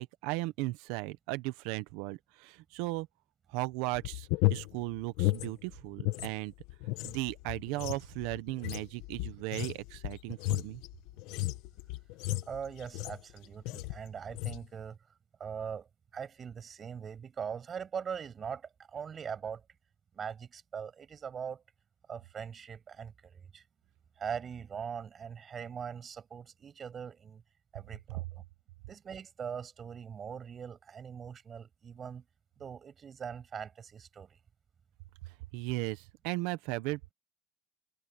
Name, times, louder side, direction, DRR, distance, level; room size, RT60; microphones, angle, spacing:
voice 1, 0.0-3.1 3.5-6.5 7.0-10.8 28.1-28.2 35.5-37.1, right 20 dB, 85° right, 1.2 m, -36 dB
sound 1, 3.9-6.3 6.6-13.3 13.7-14.0 14.3-14.7, left 18 dB, 80° left, 1.8 m, -34 dB
voice 2, 12.5-15.0 15.4-15.9 16.1-19.6 20.1-21.6 22.1-23.6 24.2-27.4 27.7-28.4 28.9-32.2 32.6-34.4, right 7 dB, 40° right, 7.9 m, -41 dB
supercardioid pair, 100°, 0 cm